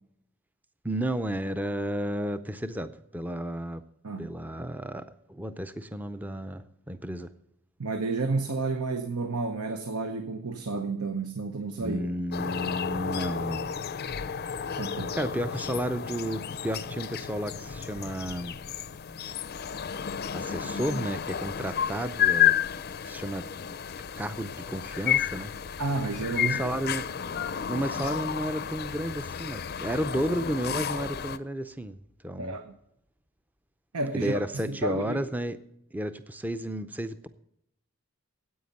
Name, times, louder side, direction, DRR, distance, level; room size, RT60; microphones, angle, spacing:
voice 1, 0.8-3.8 4.2-7.3 11.8-13.7 15.1-18.6 20.3-22.6 23.0-23.5 24.2-25.5 26.4-27.1 27.7-32.6 34.1-35.6 35.9-37.3, right 1 dB, 5° right, 0.5 m, -32 dB
voice 2, 7.8-12.0 14.7-15.1 25.8-26.8 32.4-32.7 33.9-34.4 34.7-35.2, right 3 dB, 85° right, 0.9 m, -31 dB
sound 1, 12.3-31.4, left 9 dB, 45° left, 0.5 m, -31 dB
9.5 x 8.6 x 8.4 m
head